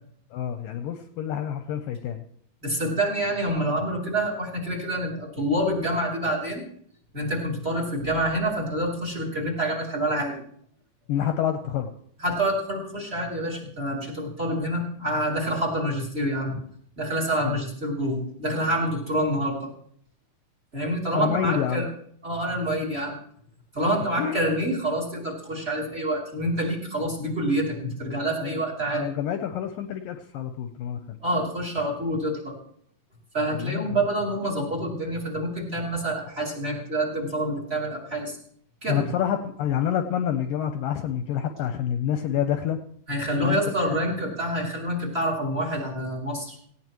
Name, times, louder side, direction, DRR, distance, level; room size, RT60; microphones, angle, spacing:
voice 1, 0.3-2.2 11.1-11.9 16.5-16.6 17.4-17.6 21.1-21.9 24.2-24.5 28.4-28.6 28.9-31.2 33.5-33.9 38.9-42.8 43.4-43.6 43.9-44.0, left 9 dB, 75° left, 7 dB, 2.2 m, -28 dB
voice 2, 2.6-6.6 7.1-10.3 12.2-16.6 17.0-19.6 20.7-21.9 22.2-23.2 23.7-29.1 31.2-32.5 33.3-38.4 38.8-39.1 43.1-46.6, right 1 dB, 15° right, -1 dB, 3.0 m, -27 dB
18.5 x 17.0 x 3.1 m, 0.64 s
omnidirectional pair, 4.4 m